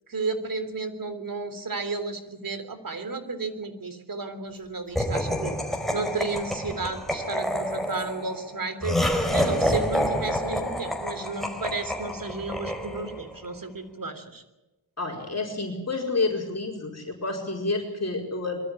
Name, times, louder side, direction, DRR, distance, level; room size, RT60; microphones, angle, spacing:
voice 1, 0.1-9.0 9.3-14.4, right 3 dB, 50° right, 10 dB, 3.3 m, -33 dB
Laughter, 5.0-13.3, equal, ahead, 4.6 m, -28 dB
voice 2, 15.0-18.6, left 3 dB, 35° left, 0 dB, 4.8 m, -29 dB
23.0 x 13.5 x 9.8 m, 1.0 s
cardioid pair, 65°, 43 cm